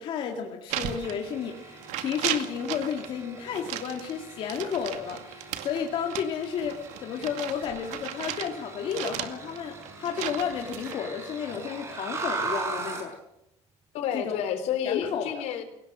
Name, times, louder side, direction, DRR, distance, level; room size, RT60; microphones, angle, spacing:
voice 1, 0.0-13.1 14.1-14.3 14.8-15.5, left 7 dB, 45° left, 2 dB, 2.4 m, -32 dB
sound 1, 0.7-1.6 1.8-3.1 3.5-8.5 8.9-10.9, right 12 dB, 80° right, 2.3 m, -35 dB
sound 2, 0.8-13.1, right 4 dB, 25° right, 5.8 m, -40 dB
voice 2, 13.9-15.6, left 9 dB, 65° left, 8 dB, 4.2 m, -29 dB
29.0 x 18.0 x 6.3 m, 0.84 s
cardioid pair, 180°, 12 cm